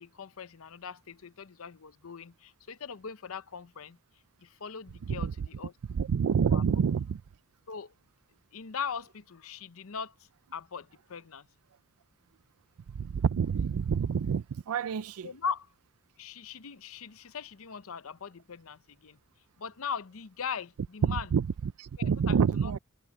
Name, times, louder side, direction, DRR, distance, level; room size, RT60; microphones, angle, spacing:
voice 1, 0.0-4.0 4.4-5.7 6.5-6.6 7.7-7.9 8.5-10.1 10.5-11.5 15.2-15.7 16.2-19.2 19.6-21.3 22.0-22.4 22.6-22.7, left 6 dB, 70° left, 0.7 m, -40 dB
voice 2, 5.9-7.2 13.0-15.3 21.0-22.8, right 6 dB, 85° right, 0.4 m, -28 dB
open air
head